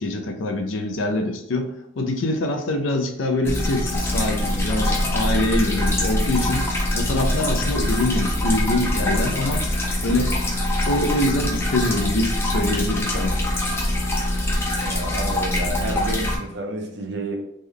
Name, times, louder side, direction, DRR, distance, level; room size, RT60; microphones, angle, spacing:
voice 1, 0.0-9.7 10.0-10.3 10.9-13.4, left 2 dB, 75° left, 0.5 m, -24 dB
sound 1, 3.4-16.4, left 1 dB, 15° left, 0.4 m, -23 dB
voice 2, 14.8-17.4, right 2 dB, 60° right, 0.6 m, -30 dB
3.1 x 2.1 x 3.7 m
head